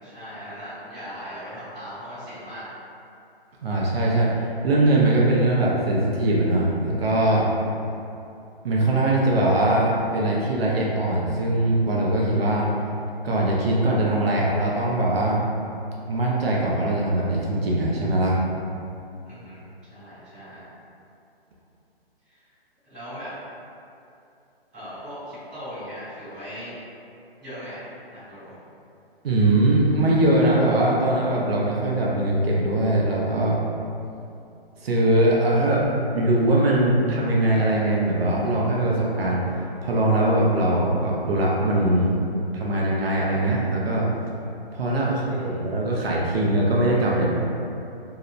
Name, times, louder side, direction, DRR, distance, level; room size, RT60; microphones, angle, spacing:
voice 1, 0.0-2.7 19.2-19.6 19.9-20.6 22.3-22.4 22.9-23.3 24.7-26.8 27.4-28.5 45.0-45.6, equal, ahead, -29 dB, 0.7 m, -39 dB
voice 2, 3.6-7.5 8.6-12.7 13.2-15.4 16.1-18.4 29.2-33.6 34.8-35.8 36.1-42.2 42.5-44.1 44.7-47.3, right 1 dB, 70° right, -4 dB, 0.6 m, -21 dB
2.8 x 2.0 x 2.4 m, 2.7 s
hypercardioid pair, 175°, 31 cm